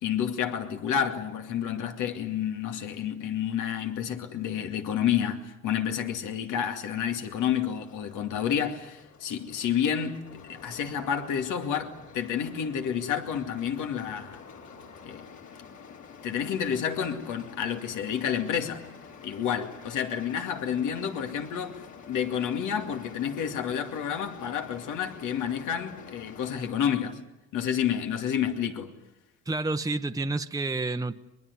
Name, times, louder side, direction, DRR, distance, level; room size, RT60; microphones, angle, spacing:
voice 1, 0.0-14.4 15.0-15.3 16.2-18.8 19.2-27.2 27.5-28.9, left 8 dB, 90° left, 2.4 m, -30 dB
sound 1, 6.8-26.7, left 6 dB, 70° left, 4.4 m, -48 dB
voice 2, 29.5-31.2, right 3 dB, 10° right, 0.9 m, -29 dB
23.0 x 22.0 x 9.7 m
cardioid pair, 90°, 30 cm